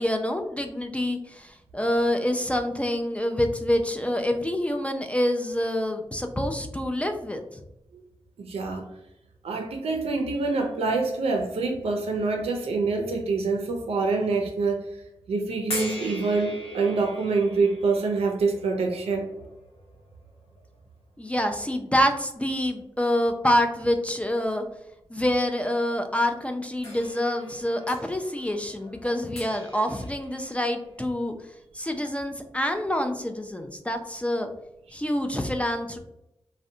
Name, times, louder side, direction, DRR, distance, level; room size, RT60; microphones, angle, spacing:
voice 1, 0.0-7.4 21.2-24.6 25.1-31.3 31.7-34.5 34.9-36.0, left 1 dB, 15° left, 5 dB, 0.3 m, -26 dB
voice 2, 8.4-8.8 9.4-14.8 15.3-19.3, right 3 dB, 80° right, 3 dB, 0.4 m, -26 dB
sound 1, 15.7-20.8 21.6-21.7 26.8-31.1, left 1 dB, 80° left, 0.8 m, -40 dB
2.6 x 2.1 x 2.5 m, 0.86 s
cardioid pair, 45°, 10 cm